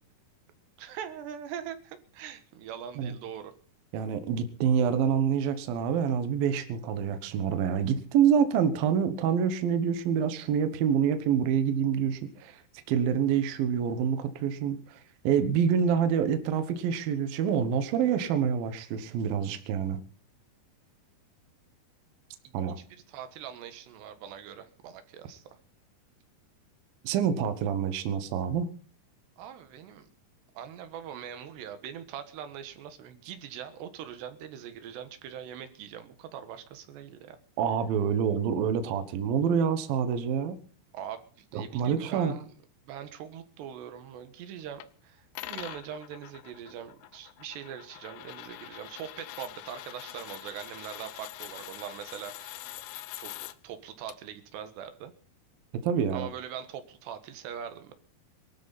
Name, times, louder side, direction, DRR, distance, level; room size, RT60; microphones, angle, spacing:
voice 1, 0.8-3.5 22.5-25.6 29.4-30.1 30.6-37.4 40.9-42.5 42.9-52.7 53.0-53.4 53.6-55.1 56.1-57.9, right 9 dB, 85° right, 9 dB, 3.6 m, -42 dB
voice 2, 3.9-12.6 12.9-20.0 22.5-22.8 27.0-28.7 37.6-40.6 41.5-42.4 55.8-56.3, right 7 dB, 70° right, 10 dB, 2.8 m, -27 dB
sound 1, 44.8-44.9 45.4-53.5 54.1-54.2, left 15 dB, 80° left, 2.7 m, -44 dB
23.0 x 13.0 x 4.1 m, 0.42 s
omnidirectional pair, 4.8 m